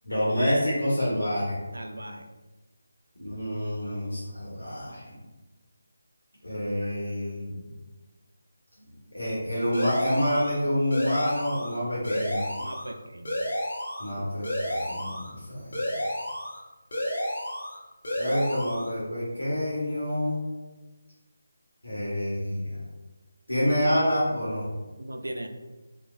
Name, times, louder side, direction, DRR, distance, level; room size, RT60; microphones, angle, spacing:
voice 1, 0.0-1.6 3.2-5.2 6.4-7.6 8.8-8.9 9.1-12.5 14.0-15.8 18.2-20.4 21.8-22.8 23.5-24.7, equal, 75° left, -7 dB, 1.0 m, -27 dB
voice 2, 1.7-2.2 12.6-13.4 25.0-25.5, right 1 dB, 70° right, 5 dB, 0.3 m, -38 dB
sound 1, 9.7-10.6 10.9-11.8 12.0-12.9 13.2-14.1 14.4-15.3 15.7-16.6 16.9-17.8 18.0-18.9, equal, 50° left, 0.9 m, -31 dB
3.0 x 2.2 x 2.3 m, 1.2 s
figure-of-eight pair, 155°, 0 cm